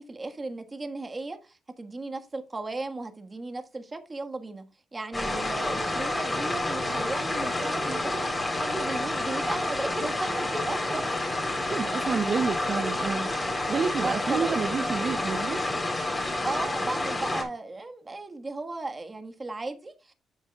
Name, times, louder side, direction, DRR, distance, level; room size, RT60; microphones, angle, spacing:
voice 1, 0.0-4.6 4.9-11.3 14.0-14.6 16.4-20.1, right 2 dB, 25° right, 1.6 m, -35 dB
sound 1, 5.1-17.4, left 2 dB, 20° left, 3.6 m, -29 dB
voice 2, 11.7-15.6, right 5 dB, 45° right, 0.8 m, -29 dB
12.0 x 7.3 x 2.4 m
cardioid pair, 90°, 0 cm